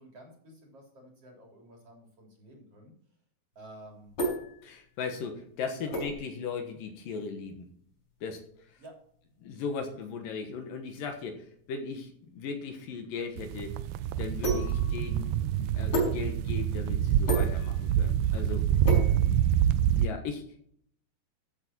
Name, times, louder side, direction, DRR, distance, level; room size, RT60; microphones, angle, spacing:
voice 1, 0.0-2.9 3.6-4.1 5.8-6.0 8.8-9.0 19.1-19.5, right 1 dB, 40° right, 0 dB, 4.3 m, -51 dB
sound 1, 3.5-19.9, right 1 dB, 35° left, 6.2 m, -37 dB
voice 2, 4.6-7.7 8.2-8.8 9.4-13.8 14.2-18.7 19.0-19.1 19.9-20.6, left 5 dB, 70° left, 5 dB, 2.9 m, -38 dB
sound 2, 13.4-20.1, right 10 dB, 80° right, 2.1 m, -26 dB
14.5 x 8.3 x 4.3 m, 0.64 s
omnidirectional pair, 4.4 m